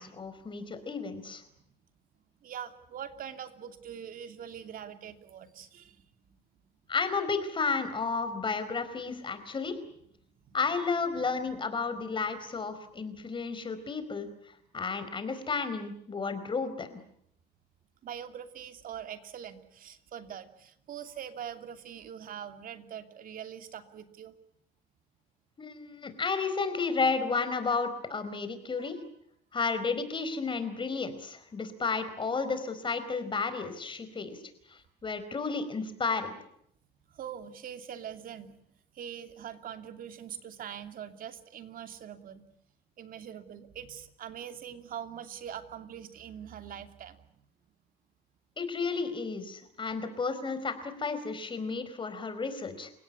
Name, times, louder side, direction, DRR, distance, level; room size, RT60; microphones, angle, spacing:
voice 1, 0.0-1.4 6.9-9.8 10.5-14.3 14.7-17.0 25.6-29.0 29.5-34.4 34.7-36.3 48.6-52.9, left 4 dB, 30° left, 10 dB, 4.6 m, -32 dB
voice 2, 2.4-6.4 10.5-10.6 11.1-11.6 11.9-12.0 18.0-24.3 28.8-28.9 37.1-38.6 38.9-42.4 43.0-47.4, right 9 dB, 55° right, 8 dB, 2.8 m, -43 dB
30.0 x 17.0 x 9.8 m, 0.70 s
cardioid pair, 110°, 17 cm